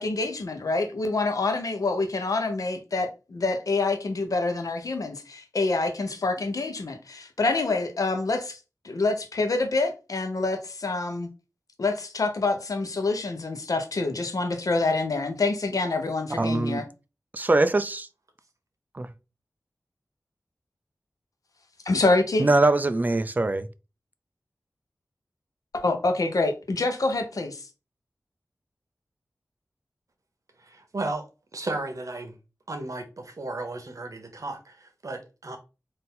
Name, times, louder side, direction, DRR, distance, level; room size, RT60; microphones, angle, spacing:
voice 1, 0.0-8.6 8.8-11.3 11.8-16.9 21.8-22.5 25.8-27.7, left 3 dB, 75° left, 0.8 m, -26 dB
voice 2, 16.4-16.8 17.3-18.1 18.9-19.1 22.4-23.7, right 2 dB, 30° right, 0.4 m, -22 dB
voice 3, 30.6-31.3 31.5-32.3 32.7-35.6, right 2 dB, 65° right, 1.1 m, -34 dB
4.1 x 2.6 x 3.8 m
wide cardioid pair, 55°, 6 cm